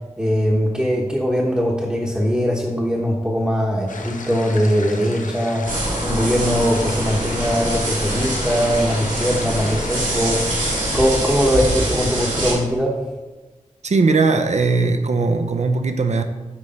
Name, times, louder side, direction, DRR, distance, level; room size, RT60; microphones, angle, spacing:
voice 1, 0.2-13.0, equal, 10° right, -4 dB, 1.0 m, -21 dB
sound 1, 3.9-11.1, left 3 dB, 85° left, 0.7 m, -34 dB
sound 2, 5.6-12.5, right 1 dB, 90° right, 2.4 m, -24 dB
voice 2, 13.8-16.2, right 4 dB, 60° right, 7 dB, 0.7 m, -19 dB
8.7 x 3.3 x 5.5 m, 1.2 s
wide cardioid pair, 90°, 13 cm